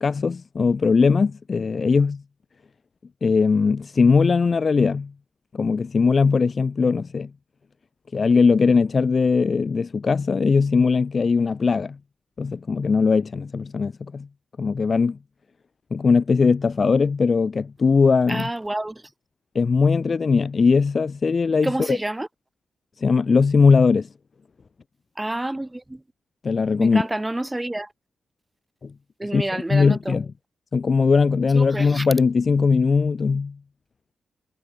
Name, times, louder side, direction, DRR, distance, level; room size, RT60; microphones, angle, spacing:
voice 1, 0.0-2.2 3.2-5.1 5.5-7.3 8.1-12.0 12.4-14.3 14.6-15.2 15.9-18.5 19.5-22.0 23.0-24.1 26.4-27.0 28.8-28.9 29.2-30.3 30.7-33.6, left 5 dB, 45° left, 1.1 m, -20 dB
voice 2, 18.3-19.0 21.6-22.3 25.2-26.0 26.8-27.9 29.2-30.1 31.5-32.1, right 1 dB, 15° right, 0.8 m, -28 dB
cardioid pair, 70°, 0 cm